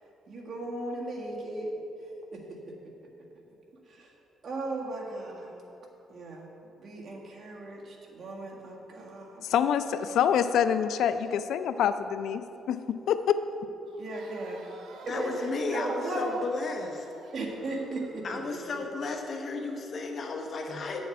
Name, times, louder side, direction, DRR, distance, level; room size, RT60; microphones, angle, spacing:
voice 1, 0.3-1.8 2.3-2.9 3.9-4.1 4.4-5.6 6.1-6.5 6.8-9.5 14.0-14.6 15.0-15.4 15.7-16.3 17.3-18.2, right 2 dB, 50° right, -2 dB, 1.8 m, -37 dB
voice 2, 9.4-13.4, left 8 dB, 75° left, 11 dB, 0.3 m, -26 dB
Crowd, 13.9-18.8, right 3 dB, 70° right, 1.0 m, -52 dB
voice 3, 15.1-17.1 18.2-21.1, left 3 dB, 45° left, 3 dB, 1.0 m, -33 dB
9.0 x 7.1 x 4.6 m, 2.8 s
cardioid pair, 110°, 0 cm